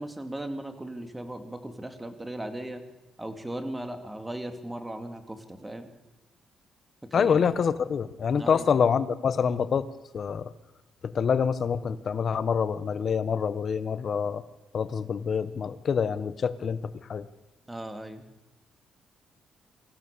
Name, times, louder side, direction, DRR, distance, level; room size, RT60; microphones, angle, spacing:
voice 1, 0.0-2.8 3.2-5.9 7.1-7.4 8.3-8.7 17.7-18.3, right 1 dB, 10° right, 7 dB, 2.7 m, -37 dB
voice 2, 7.1-9.8 10.1-10.5 11.0-14.4 14.7-16.8 17.1-17.3, left 6 dB, 50° left, 13 dB, 1.3 m, -26 dB
25.5 x 15.5 x 7.0 m, 1.0 s
cardioid pair, 90°, 0 cm